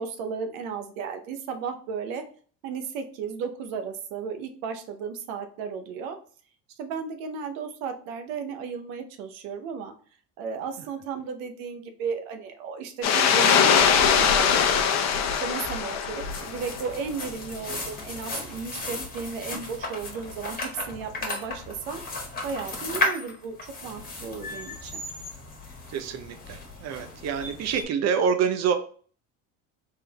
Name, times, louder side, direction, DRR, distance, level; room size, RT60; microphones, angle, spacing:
voice 1, 0.0-2.2 2.6-6.2 6.8-9.9 10.4-14.8 15.3-22.0 22.4-23.6 23.8-25.0, right 6 dB, 85° right, 7 dB, 0.8 m, -34 dB
sound 1, 13.0-16.8, left 7 dB, 45° left, 0.7 m, -21 dB
sound 2, 16.1-27.8, left 2 dB, 20° left, 1.5 m, -35 dB
voice 2, 25.9-28.7, right 7 dB, 45° right, 9 dB, 0.6 m, -26 dB
3.7 x 3.3 x 2.8 m, 0.43 s
supercardioid pair, 85°, 39 cm